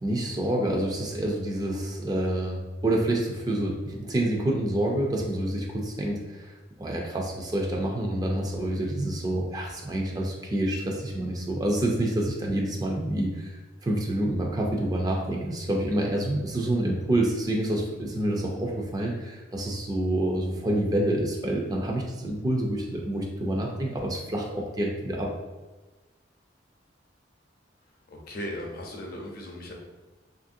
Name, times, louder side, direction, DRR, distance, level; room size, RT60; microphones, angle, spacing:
voice 1, 0.0-6.5 6.8-25.3, right 1 dB, 20° right, 0 dB, 0.4 m, -28 dB
voice 2, 28.1-29.7, left 1 dB, 55° left, -1 dB, 0.6 m, -37 dB
3.0 x 2.5 x 2.6 m, 1.2 s
head